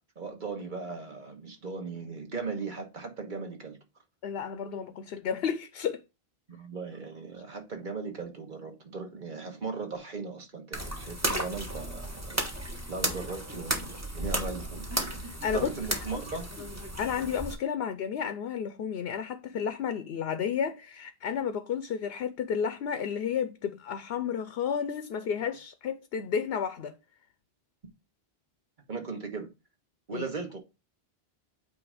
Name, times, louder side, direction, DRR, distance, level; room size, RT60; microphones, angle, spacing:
voice 1, 0.1-3.8 6.5-12.4 12.9-14.9 15.5-16.5 28.9-29.5 30.1-30.6, right 4 dB, 50° right, 1.6 m, -38 dB
voice 2, 4.2-6.0 15.2-15.7 16.1-16.2 17.0-27.0 30.1-30.2, left 7 dB, 80° left, 0.9 m, -32 dB
sound 1, 10.7-17.5, right 1 dB, 15° right, 1.3 m, -34 dB
8.4 x 2.8 x 4.8 m
omnidirectional pair, 1.0 m